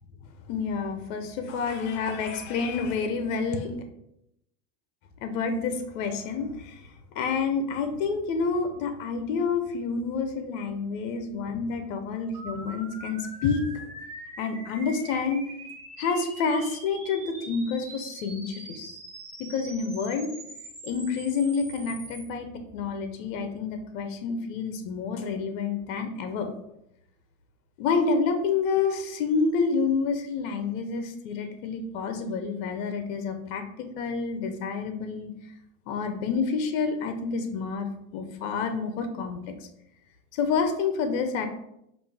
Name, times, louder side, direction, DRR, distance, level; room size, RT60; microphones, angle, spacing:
voice 1, 0.5-3.7 5.2-13.6 14.4-15.5 16.0-18.9 19.4-20.3 20.8-26.5 27.8-35.3 35.9-39.4 40.3-41.5, left 5 dB, 70° left, 7 dB, 0.8 m, -28 dB
sound 1, 12.3-22.2, right 2 dB, 15° right, 1.3 m, -43 dB
5.2 x 2.6 x 3.3 m, 0.80 s
supercardioid pair, 110°, 40 cm